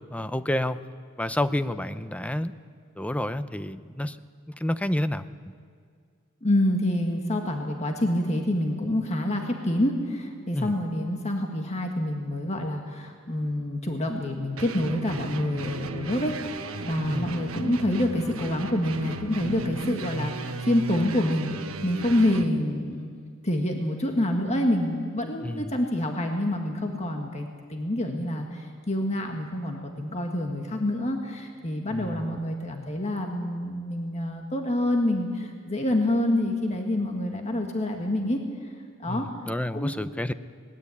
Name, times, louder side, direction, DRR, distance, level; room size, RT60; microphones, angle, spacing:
voice 1, 0.1-0.8 1.2-2.6 3.0-4.2 4.5-5.3 10.5-10.7 17.1-17.3 25.4-25.8 31.9-32.3 39.1-40.3, left 1 dB, 5° left, 12 dB, 0.6 m, -29 dB
voice 2, 6.4-23.1 23.4-38.4 39.0-39.3 39.7-40.0, left 1 dB, 30° left, 2 dB, 1.7 m, -27 dB
sound 1, 14.6-22.5, right 3 dB, 80° right, 1.2 m, -35 dB
20.5 x 19.5 x 8.5 m, 2.1 s
head